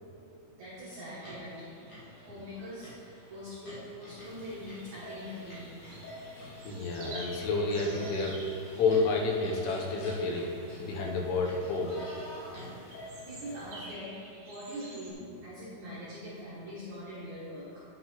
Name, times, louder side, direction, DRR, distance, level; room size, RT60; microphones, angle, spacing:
voice 1, 0.6-1.8 2.1-5.7 13.3-17.8, equal, 80° right, -8 dB, 1.7 m, -43 dB
sound 1, 0.7-12.8, equal, 50° left, 1.8 m, -51 dB
sound 2, 0.8-15.1, right 2 dB, 50° right, 2.2 m, -52 dB
sound 3, 4.2-13.9, left 1 dB, 70° left, 3.7 m, -48 dB
voice 2, 6.7-8.4 8.8-10.5 10.8-11.9, left 3 dB, 85° left, 0 dB, 3.4 m, -29 dB
9.4 x 8.6 x 3.0 m, 2.9 s
omnidirectional pair, 5.5 m